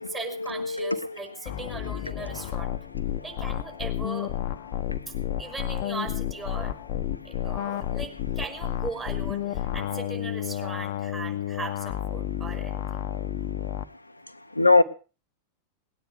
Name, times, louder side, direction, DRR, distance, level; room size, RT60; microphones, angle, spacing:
voice 1, 0.0-2.7 3.2-4.3 5.4-6.7 7.2-13.0, right 4 dB, 20° right, 4.7 m, -38 dB
voice 2, 0.8-1.1 14.6-14.8, left 3 dB, 85° left, 0.8 m, -20 dB
sound 1, 1.5-13.8, left 12 dB, 50° left, 0.9 m, -31 dB
20.0 x 9.5 x 6.4 m
figure-of-eight pair, 90°, 0 cm